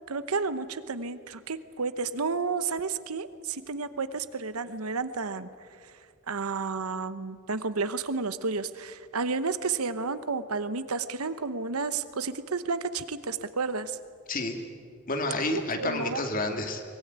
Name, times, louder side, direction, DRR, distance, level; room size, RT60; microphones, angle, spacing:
voice 1, 0.1-5.5 6.3-14.0 15.5-16.2, right 4 dB, 80° right, 13 dB, 1.0 m, -31 dB
voice 2, 14.3-14.6 15.1-16.8, left 2 dB, 40° left, 4 dB, 2.5 m, -30 dB
23.0 x 21.0 x 9.5 m, 2.2 s
head